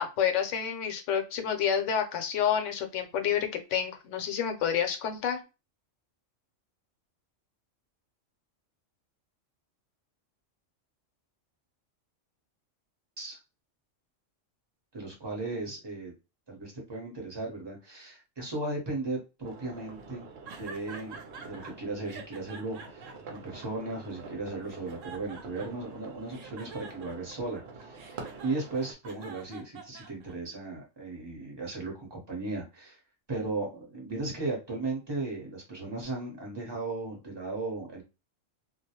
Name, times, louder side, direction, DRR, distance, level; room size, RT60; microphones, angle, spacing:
voice 1, 0.0-5.4, left 8 dB, 75° left, 6 dB, 0.9 m, -29 dB
voice 2, 14.9-16.1 16.5-33.0 33.3-38.0, right 2 dB, 25° right, -1 dB, 0.8 m, -36 dB
sound 1, 19.4-28.9, right 4 dB, 60° right, 0.8 m, -47 dB
sound 2, 20.5-21.7 22.1-24.2 24.6-25.9 26.3-30.6, right 5 dB, 85° right, 1.0 m, -47 dB
2.3 x 2.0 x 2.8 m, 0.28 s
omnidirectional pair, 1.3 m